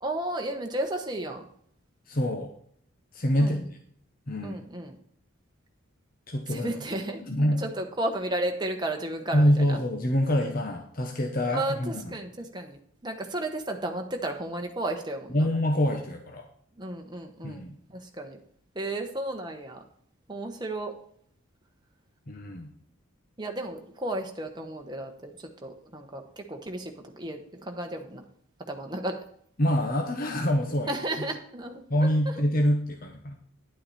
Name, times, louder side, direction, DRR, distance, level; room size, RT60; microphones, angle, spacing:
voice 1, 0.0-1.5 3.4-3.6 4.4-5.0 6.5-7.2 7.5-9.8 11.5-15.5 16.8-17.6 17.9-18.4 18.7-19.8 20.3-21.0 23.4-28.2 28.7-29.2 30.9-32.4, right 1 dB, 20° right, 3 dB, 1.1 m, -33 dB
voice 2, 2.1-2.5 3.1-3.8 4.3-4.6 6.3-6.7 7.2-7.6 9.3-12.1 15.3-16.5 17.4-17.8 22.3-22.7 29.6-30.9 31.9-33.4, equal, 40° left, 4 dB, 0.9 m, -26 dB
10.0 x 8.7 x 4.2 m, 0.63 s
head